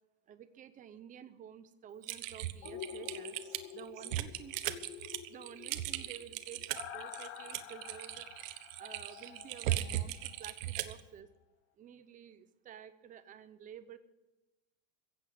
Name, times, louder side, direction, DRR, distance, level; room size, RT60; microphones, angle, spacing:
voice 1, 0.3-3.4 3.7-4.6 5.3-11.3 11.8-14.0, right 9 dB, 20° right, 12 dB, 0.6 m, -51 dB
Typing, 2.0-11.0, right 14 dB, 85° right, 1.2 m, -38 dB
sound 1, 2.6-10.5 10.8-10.9, left 9 dB, 35° left, 0.9 m, -49 dB
15.5 x 8.0 x 8.2 m, 1.1 s
supercardioid pair, 170°, 39 cm